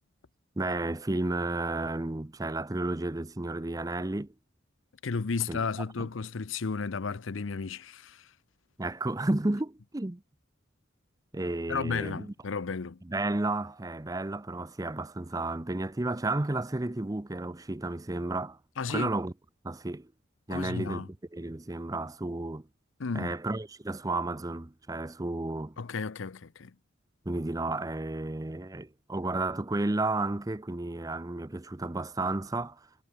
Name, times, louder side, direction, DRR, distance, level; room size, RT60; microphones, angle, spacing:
voice 1, 0.6-4.3 5.5-5.6 6.0-6.1 8.8-10.2 11.3-12.3 13.0-18.6 18.9-19.3 19.6-20.1 20.5-22.7 23.1-25.8 27.3-32.9, right 2 dB, 20° right, 0.6 m, -32 dB
voice 2, 5.0-8.3 11.7-13.0 18.8-19.1 20.5-21.1 23.0-23.4 25.8-26.7, left 5 dB, 80° left, 0.7 m, -33 dB
head